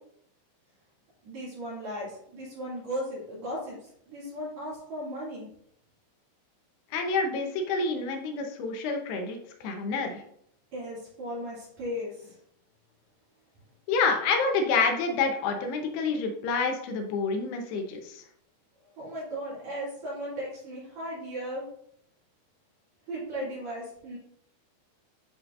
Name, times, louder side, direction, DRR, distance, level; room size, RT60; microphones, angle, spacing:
voice 1, 1.2-5.5 10.7-12.4 19.0-21.6 23.1-24.2, equal, 50° right, -7 dB, 3.1 m, -36 dB
voice 2, 6.9-9.4 9.6-10.2 13.9-18.2, left 4 dB, 80° left, 4 dB, 2.9 m, -28 dB
9.2 x 5.1 x 2.5 m, 0.70 s
omnidirectional pair, 4.9 m